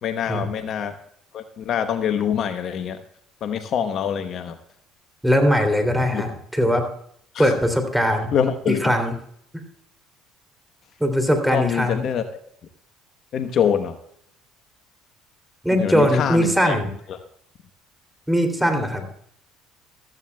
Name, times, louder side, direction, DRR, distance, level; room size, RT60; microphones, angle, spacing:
voice 1, 0.0-1.0 1.3-3.0 3.4-4.6 6.1-6.2 7.3-7.5 8.3-8.9 11.5-12.2 13.3-14.0 15.7-16.8 17.1-17.2, left 8 dB, 55° left, 8 dB, 1.1 m, -25 dB
voice 2, 5.2-6.9 7.4-8.3 8.7-9.1 9.5-9.6 11.0-12.0 15.6-16.9 18.3-19.1, equal, 5° right, 5 dB, 3.0 m, -20 dB
15.0 x 14.0 x 2.3 m, 0.66 s
supercardioid pair, 90°, 0 cm